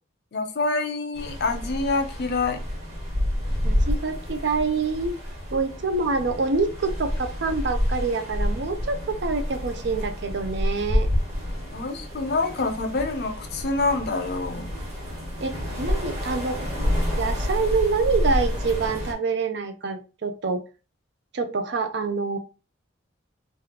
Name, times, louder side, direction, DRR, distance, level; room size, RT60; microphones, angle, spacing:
voice 1, 0.3-2.6 11.7-14.7, left 3 dB, 55° left, 0.5 m, -26 dB
sound 1, 1.1-19.1, left 1 dB, 35° right, 1.3 m, -29 dB
voice 2, 3.6-5.2 5.5-11.1 15.4-16.6 17.2-20.6 21.3-22.4, right 4 dB, 60° right, 0.5 m, -26 dB
3.3 x 2.3 x 2.9 m
head